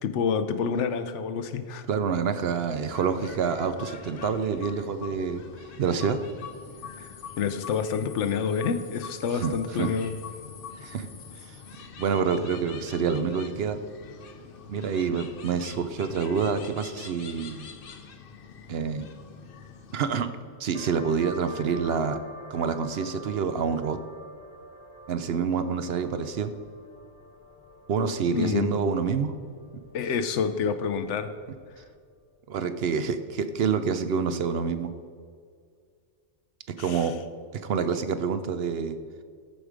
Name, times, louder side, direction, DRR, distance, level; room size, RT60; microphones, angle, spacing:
voice 1, 0.0-1.8 7.0-10.2 28.3-28.8 29.9-31.3 36.8-37.1, left 6 dB, 75° left, 10 dB, 1.0 m, -28 dB
voice 2, 1.9-5.4 5.8-6.2 9.4-9.5 9.8-9.9 10.8-11.1 11.5-11.6 12.0-13.8 14.7-17.7 18.7-19.1 19.9-20.3 20.6-22.2 22.5-24.0 25.1-26.5 27.9-29.3 32.5-34.9 36.8-37.1 37.6-39.0, right 6 dB, 65° right, 10 dB, 0.8 m, -27 dB
sound 1, 2.9-20.1, left 6 dB, 55° left, 0.9 m, -44 dB
sound 2, 20.7-32.0, equal, 25° left, 1.1 m, -46 dB
13.5 x 4.9 x 5.0 m, 2.1 s
omnidirectional pair, 1.2 m